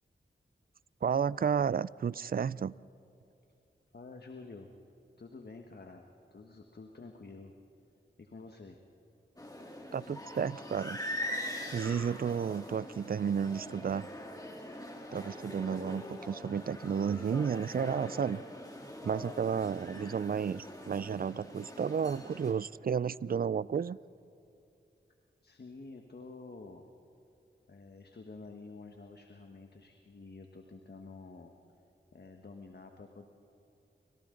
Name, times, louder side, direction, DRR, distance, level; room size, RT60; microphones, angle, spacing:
voice 1, 1.0-2.7 9.9-11.0 11.7-14.1 15.1-18.4 19.0-24.0, right 7 dB, 50° right, 0.4 m, -32 dB
voice 2, 3.9-4.7 5.2-7.5 8.2-8.8 25.4-26.8 27.7-31.5 32.1-33.3, left 3 dB, 55° left, 1.4 m, -49 dB
sound 1, 9.4-22.5, left 1 dB, 20° left, 3.2 m, -43 dB
sound 2, 14.3-18.0 18.9-23.3, left 2 dB, 80° left, 2.7 m, -58 dB
28.5 x 25.0 x 3.9 m
cardioid pair, 55°, 20 cm